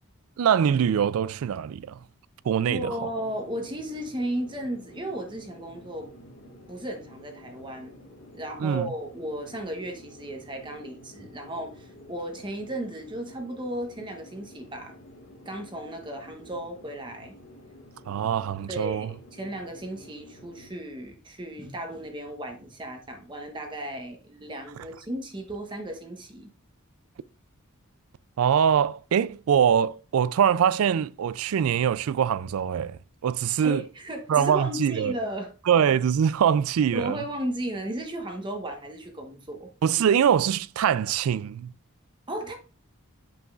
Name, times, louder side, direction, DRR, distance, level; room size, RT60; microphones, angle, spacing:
voice 1, 0.4-1.9 2.5-2.9 8.6-8.9 18.1-19.1 28.4-33.8 34.3-35.1 35.7-37.2 39.8-41.7, right 8 dB, 80° right, 0.3 m, -23 dB
voice 2, 2.7-6.1 6.7-8.0 8.3-14.9 15.4-17.3 18.7-26.5 33.6-35.5 36.9-39.7 42.3-42.5, right 1 dB, 20° right, 1.0 m, -35 dB
sound 1, 3.1-20.7, left 1 dB, 75° left, 1.7 m, -50 dB
7.7 x 5.6 x 2.4 m
head